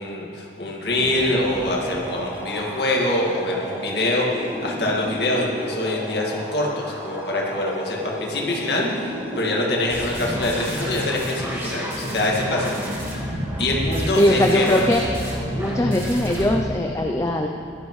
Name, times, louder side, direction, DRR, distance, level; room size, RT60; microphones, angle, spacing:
voice 1, 0.0-4.3 4.6-12.7 13.6-14.9, left 1 dB, 65° left, -2 dB, 2.0 m, -24 dB
sound 1, 0.9-16.6, equal, 15° right, 1.6 m, -31 dB
voice 2, 14.2-15.0 15.5-17.5, left 1 dB, 15° left, 2 dB, 0.5 m, -20 dB
16.0 x 12.0 x 3.2 m, 2.8 s
head